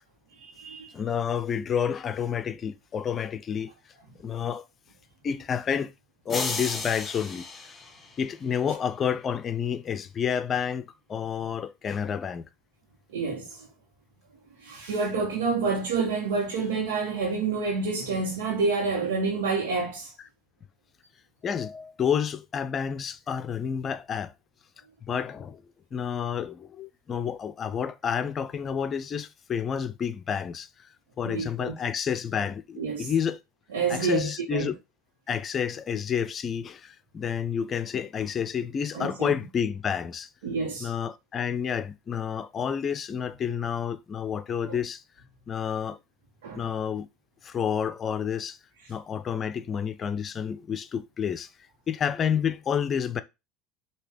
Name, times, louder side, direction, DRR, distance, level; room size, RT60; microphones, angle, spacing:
voice 1, 0.4-0.9 13.1-13.7 14.6-20.1 31.2-31.7 32.8-33.1 33.7-34.7 38.9-39.3 40.4-40.9 44.7-44.8 46.4-46.6, right 4 dB, 85° right, 1.5 m, -28 dB
voice 2, 0.9-3.7 4.2-4.7 5.2-5.9 6.3-7.5 8.2-12.5 21.4-24.3 25.1-25.6 25.9-30.7 31.2-33.4 33.9-34.8 35.3-40.3 40.8-45.0 45.5-46.0 46.6-47.1 47.4-48.6 48.9-51.5 51.9-53.2, left 7 dB, 35° left, 0.6 m, -29 dB
sound 1, 6.3-8.6, left 3 dB, 20° left, 1.9 m, -34 dB
6.6 x 2.9 x 5.1 m
hypercardioid pair, 85°, 0 cm